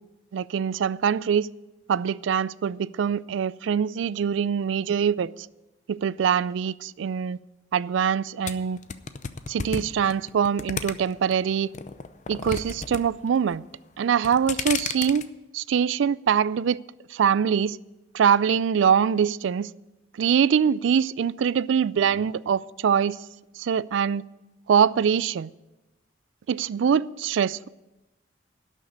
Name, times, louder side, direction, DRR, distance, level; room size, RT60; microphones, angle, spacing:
voice 1, 0.3-1.5 1.9-5.3 5.9-7.4 7.7-8.8 9.5-11.7 12.3-13.6 14.0-15.2 15.5-16.8 17.1-17.8 18.1-19.7 20.2-23.2 23.6-24.2 24.7-25.5 26.5-27.7, right 7 dB, 85° right, 0.3 m, -23 dB
sound 1, 8.5-11.3 11.7-13.0 13.3-13.7 14.1-15.2, left 5 dB, 40° left, 0.6 m, -32 dB
12.0 x 6.4 x 9.3 m
head